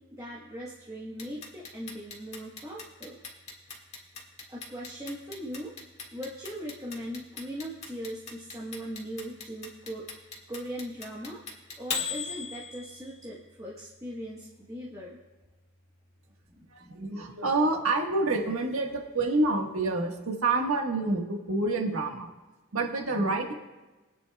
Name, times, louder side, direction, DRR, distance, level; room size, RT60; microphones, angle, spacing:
voice 1, 0.1-3.2 4.5-5.7 6.1-10.1 10.5-11.4 11.8-15.2 16.5-16.9, equal, 15° right, -5 dB, 1.2 m, -39 dB
Clock, 1.2-13.2, left 5 dB, 30° left, 1.8 m, -37 dB
voice 2, 16.7-22.3 22.7-23.6, right 2 dB, 80° right, 2 dB, 1.5 m, -28 dB
23.5 x 9.4 x 2.3 m, 1.2 s
head